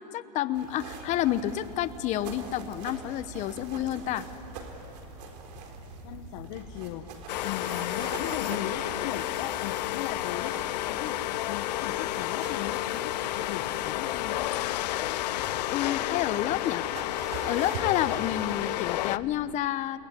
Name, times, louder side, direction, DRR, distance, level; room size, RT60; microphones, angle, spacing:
voice 1, 0.0-4.3 15.7-16.8 17.4-20.0, left 13 dB, 35° left, 13 dB, 0.9 m, -29 dB
sound 1, 0.5-18.8, right 5 dB, 75° right, 4.1 m, -44 dB
sound 2, 1.1-19.4, left 3 dB, 15° left, 7.2 m, -51 dB
voice 2, 6.0-7.0 7.4-11.2 11.5-14.5, left 11 dB, 60° left, 3 dB, 1.4 m, -37 dB
sound 3, 7.3-19.2, left 15 dB, 80° left, 0.6 m, -31 dB
29.5 x 19.0 x 9.9 m, 2.7 s
supercardioid pair, 140°, 21 cm